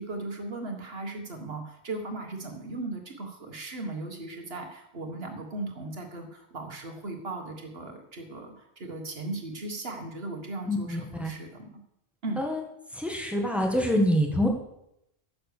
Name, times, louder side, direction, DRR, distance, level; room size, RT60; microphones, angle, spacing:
voice 1, 0.0-11.7 12.2-12.4, right 2 dB, 50° right, 4 dB, 1.8 m, -37 dB
voice 2, 10.6-11.3 12.4-12.6 12.9-14.5, equal, ahead, 2 dB, 1.6 m, -26 dB
10.0 x 7.1 x 6.8 m, 0.82 s
omnidirectional pair, 1.4 m